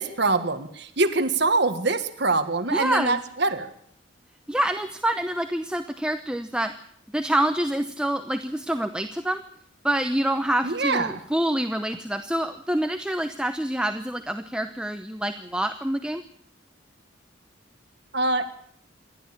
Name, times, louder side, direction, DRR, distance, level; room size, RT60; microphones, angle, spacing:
voice 1, 0.0-3.7 10.6-11.2 18.1-18.5, right 3 dB, 55° right, 9 dB, 1.7 m, -24 dB
voice 2, 2.7-3.2 4.5-6.7 7.1-9.4 9.8-16.2, right 1 dB, 5° right, 7 dB, 0.8 m, -26 dB
27.5 x 12.0 x 8.7 m, 0.66 s
head